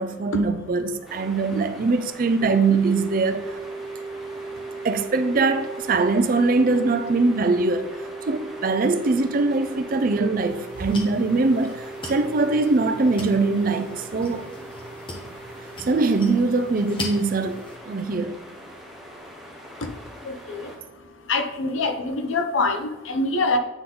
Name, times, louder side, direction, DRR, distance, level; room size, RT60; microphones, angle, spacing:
voice 1, 0.0-3.4 4.8-7.9 8.3-14.5 15.9-18.4, right 3 dB, 45° right, 0.4 m, -22 dB
sound 1, 1.1-20.8, equal, ahead, 0.9 m, -44 dB
sound 2, 2.4-19.8, right 4 dB, 55° left, 2.0 m, -38 dB
sound 3, 10.4-17.8, left 1 dB, 25° left, 1.0 m, -40 dB
voice 2, 20.2-20.7 21.3-23.6, left 3 dB, 85° left, 0.7 m, -24 dB
8.1 x 3.8 x 3.8 m
head